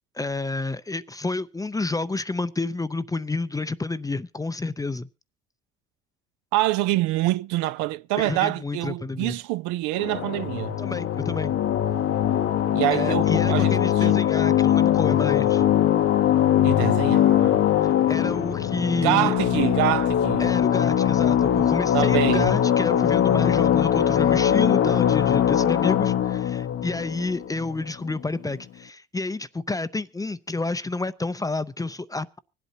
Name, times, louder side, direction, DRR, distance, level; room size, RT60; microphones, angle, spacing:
voice 1, 0.1-5.1 8.2-9.3 10.8-11.5 12.9-15.7 18.1-19.3 20.4-32.4, left 3 dB, 10° left, 0.5 m, -29 dB
voice 2, 6.5-10.8 12.7-14.1 16.6-17.6 19.0-20.5 21.9-22.5, right 17 dB, 70° right, 0.5 m, -26 dB
sound 1, 10.0-28.1, left 10 dB, 50° left, 0.8 m, -21 dB
24.5 x 8.3 x 2.8 m
supercardioid pair, 75°, 30 cm